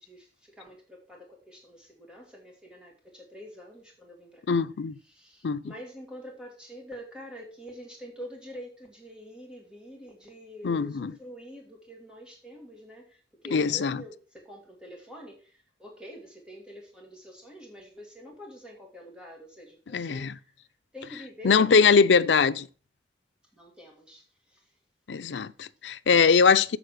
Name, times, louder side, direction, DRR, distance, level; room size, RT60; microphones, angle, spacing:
voice 1, 0.0-4.6 5.0-20.5 20.9-22.5 23.5-24.8 25.2-25.4, equal, 5° right, 2.0 m, -46 dB
voice 2, 4.5-4.9 5.4-5.7 10.6-11.1 13.5-14.0 19.9-20.3 21.4-22.6 25.1-26.8, left 5 dB, 85° left, 0.5 m, -22 dB
7.5 x 7.0 x 6.2 m
head